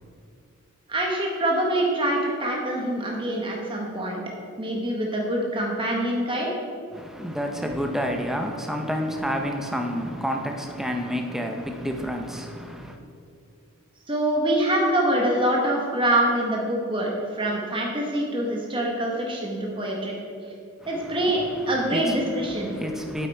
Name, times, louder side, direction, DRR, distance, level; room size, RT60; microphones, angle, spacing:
voice 1, 0.9-4.2 4.6-6.5 14.1-20.1 20.9-22.7, right 1 dB, 25° right, 1.1 m, -25 dB
voice 2, 6.9-13.0 20.8-23.3, equal, ahead, 0.6 m, -30 dB
8.2 x 8.2 x 4.5 m
head